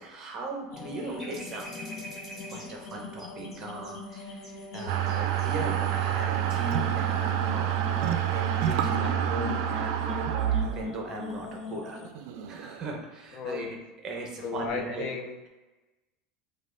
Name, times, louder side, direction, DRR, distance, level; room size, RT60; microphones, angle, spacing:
voice 1, 0.0-1.9 2.5-12.0 12.5-13.8 14.0-15.1, right 2 dB, 25° right, 1 dB, 0.7 m, -38 dB
sound 1, 0.7-12.1, left 4 dB, 70° left, 0.8 m, -41 dB
sound 2, 1.0-5.6 5.9-6.0, right 1 dB, ahead, 1.3 m, -45 dB
sound 3, 4.9-13.0, right 10 dB, 65° right, 0.3 m, -28 dB
voice 2, 13.3-13.7 14.4-15.5, left 5 dB, 50° left, 3 dB, 0.5 m, -34 dB
5.2 x 2.2 x 3.7 m, 1.2 s
cardioid pair, 175°, 2 cm